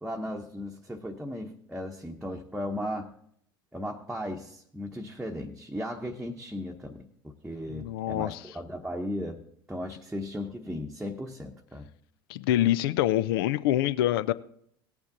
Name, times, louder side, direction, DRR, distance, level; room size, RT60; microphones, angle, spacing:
voice 1, 0.0-3.1 3.7-9.4 9.7-11.9, left 1 dB, 5° right, 0 dB, 1.0 m, -36 dB
voice 2, 7.7-8.4 12.3-14.3, left 13 dB, 70° left, 16 dB, 0.5 m, -26 dB
17.5 x 7.1 x 3.9 m, 0.67 s
hypercardioid pair, 75°, 12 cm